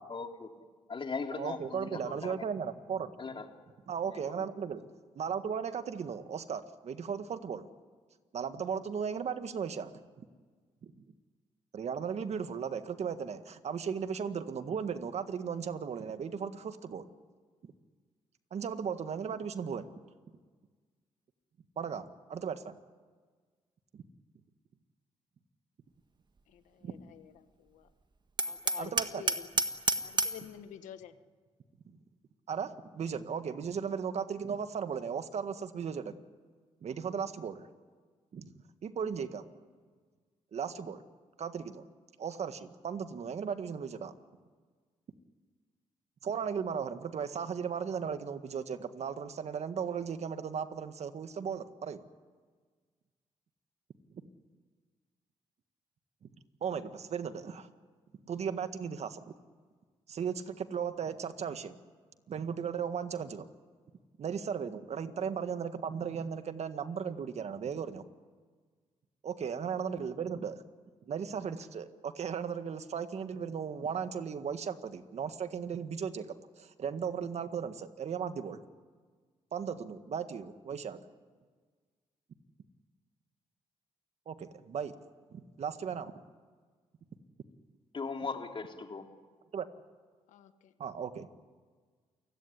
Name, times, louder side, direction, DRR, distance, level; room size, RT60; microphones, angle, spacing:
voice 1, 0.1-0.5 0.9-2.4 3.2-3.5 4.1-4.5 87.9-89.0, left 4 dB, 45° left, 3 dB, 3.5 m, -39 dB
voice 2, 1.4-3.1 3.9-4.8 5.1-7.7 8.3-9.9 10.8-10.9 11.7-17.1 17.6-17.7 18.5-19.9 21.7-22.7 23.9-24.0 26.8-26.9 28.8-29.2 32.5-36.2 36.8-37.7 38.3-38.5 38.8-39.4 40.5-41.0 41.4-41.9 42.2-44.1 46.2-52.0 56.6-57.7 58.2-59.2 60.1-61.8 62.3-63.5 64.2-68.0 69.2-70.6 71.1-76.3 76.6-78.6 79.5-81.0 84.2-84.9 85.3-86.1 89.5-89.7 90.8-91.3, right 7 dB, 60° right, 9 dB, 1.8 m, -36 dB
voice 3, 26.5-27.9 28.4-29.5 30.0-31.1 90.3-90.7, left 10 dB, 90° left, 10 dB, 1.3 m, -49 dB
Hammer, 28.4-30.5, right 3 dB, 35° right, 1.7 m, -30 dB
29.0 x 17.0 x 10.0 m, 1.5 s
cardioid pair, 65°, 12 cm